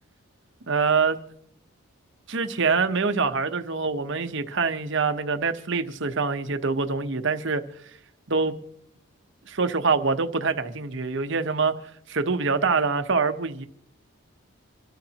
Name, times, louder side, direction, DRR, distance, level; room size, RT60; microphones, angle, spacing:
voice 1, 0.7-1.2 2.3-7.6 8.3-8.5 9.5-11.7 12.1-13.6, right 4 dB, 55° right, 0.9 m, -25 dB
27.0 x 13.0 x 2.9 m
head